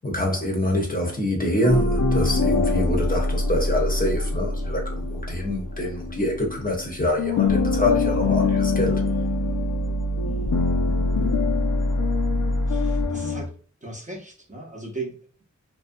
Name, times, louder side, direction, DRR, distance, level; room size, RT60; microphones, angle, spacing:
voice 1, 0.0-9.0, left 1 dB, 30° left, 0.8 m, -25 dB
sound 1, 1.6-6.9 7.2-13.5, left 3 dB, 85° left, 0.6 m, -24 dB
voice 2, 10.2-10.6 12.7-13.5 13.8-15.4, right 2 dB, 25° right, 0.7 m, -37 dB
2.5 x 2.2 x 2.5 m
wide cardioid pair, 65°, 31 cm